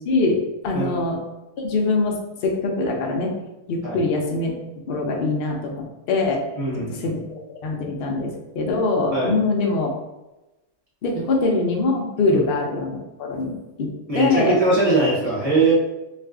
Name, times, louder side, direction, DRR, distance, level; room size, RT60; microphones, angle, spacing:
voice 1, 0.1-0.4 0.6-1.2 1.6-3.3 3.7-4.5 4.9-6.4 7.0-7.2 7.6-9.9 11.0-14.6, left 3 dB, 75° left, 1 dB, 0.5 m, -23 dB
voice 2, 6.6-7.1 9.1-9.3 12.3-12.4 14.1-15.7, right 3 dB, 40° right, -7 dB, 0.5 m, -21 dB
2.4 x 2.4 x 3.4 m, 1.0 s
omnidirectional pair, 1.6 m